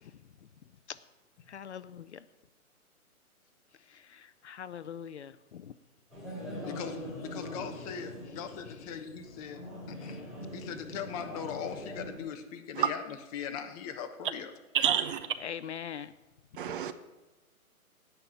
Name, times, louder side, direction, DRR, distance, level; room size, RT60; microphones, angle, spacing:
voice 1, 1.5-2.3 3.8-5.7 8.6-9.0 15.4-16.1, left 8 dB, 50° left, 0.6 m, -43 dB
sound 1, 6.1-12.2, equal, ahead, 3.4 m, -42 dB
voice 2, 6.6-10.2 10.5-13.0 13.3-14.5, left 8 dB, 25° left, 1.2 m, -40 dB
voice 3, 14.7-15.3 16.6-16.9, right 9 dB, 35° right, 0.9 m, -28 dB
17.0 x 5.8 x 9.7 m
hypercardioid pair, 140°, 43 cm